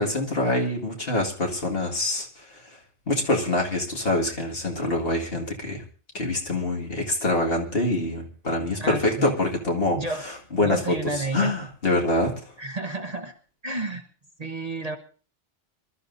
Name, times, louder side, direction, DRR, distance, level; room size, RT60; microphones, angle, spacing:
voice 1, 0.0-2.8 3.1-5.8 6.1-12.3, left 2 dB, 55° left, 0 dB, 2.3 m, -25 dB
voice 2, 8.8-9.3 9.9-10.2 10.6-11.5 12.6-13.3 13.6-14.0 14.4-15.0, right 2 dB, 35° right, 6 dB, 1.1 m, -30 dB
26.0 x 13.0 x 2.7 m, 0.39 s
omnidirectional pair, 1.2 m